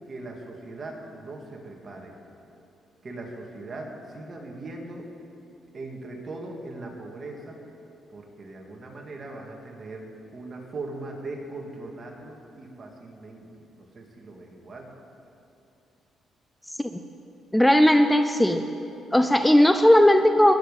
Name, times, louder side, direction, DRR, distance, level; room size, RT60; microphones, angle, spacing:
voice 1, 0.1-2.1 3.0-5.1 5.7-7.6 8.1-10.1 10.3-13.5 13.8-14.9, right 2 dB, 40° right, 1 dB, 2.2 m, -39 dB
voice 2, 17.5-18.6 19.1-20.5, left 1 dB, 5° left, 8 dB, 0.5 m, -17 dB
19.5 x 7.1 x 5.5 m, 2.7 s
cardioid pair, 90°, 0 cm